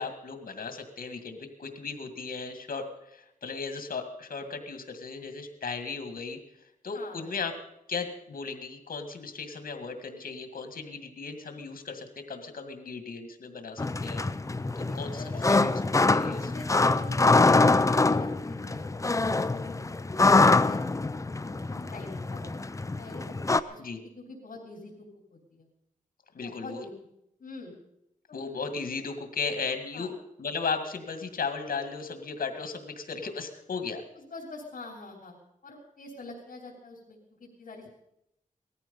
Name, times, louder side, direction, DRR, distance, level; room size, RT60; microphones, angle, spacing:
voice 1, 0.0-6.4 6.8-7.5 7.9-14.2 14.8-15.2 15.5-15.8 16.1-16.5 23.8-24.0 26.3-26.8 28.3-30.1 30.4-34.0, left 4 dB, 85° left, 7 dB, 2.0 m, -36 dB
voice 2, 6.9-7.3 14.9-15.6 16.4-20.9 21.4-25.7 26.4-26.9 27.4-27.7 29.9-30.1 34.1-35.4 35.6-37.9, left 2 dB, 70° left, -4 dB, 3.5 m, -45 dB
sound 1, 13.8-23.6, left 3 dB, 20° left, 0.6 m, -24 dB
18.5 x 14.0 x 5.5 m, 0.81 s
wide cardioid pair, 100°, 14 cm